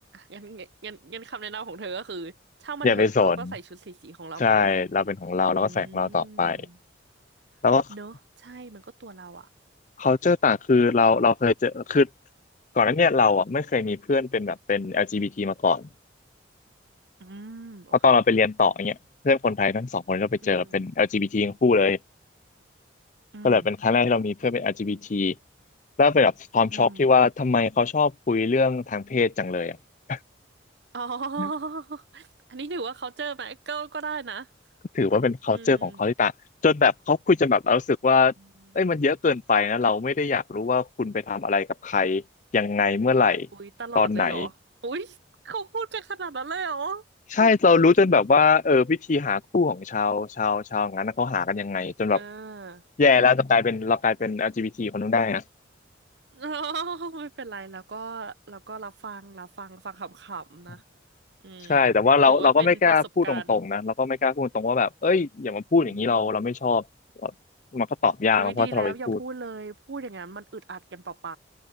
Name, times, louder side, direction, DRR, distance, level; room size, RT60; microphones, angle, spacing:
voice 1, 0.1-2.3 2.6-4.7 5.6-6.8 7.9-9.5 17.2-18.2 20.4-20.8 23.3-23.7 26.7-27.1 30.9-34.5 35.5-36.0 38.4-38.8 43.5-44.5 44.8-45.2 45.4-47.0 47.4-47.9 52.1-52.8 56.3-60.8 61.4-61.9 62.3-63.0 63.2-63.6 65.8-66.3 68.4-71.4, right 4 dB, 65° right, 0.9 m, -36 dB
voice 2, 2.8-3.5 4.4-6.6 7.6-7.8 10.0-12.1 12.8-15.8 18.0-19.0 19.2-22.0 23.4-25.3 26.0-29.8 30.1-30.2 31.4-31.5 34.9-36.3 36.6-38.3 38.8-42.2 42.5-43.5 44.0-44.5 47.4-52.2 53.0-55.4 61.7-66.8 67.2-67.3 67.7-69.2, left 4 dB, 40° left, 0.5 m, -22 dB
open air
head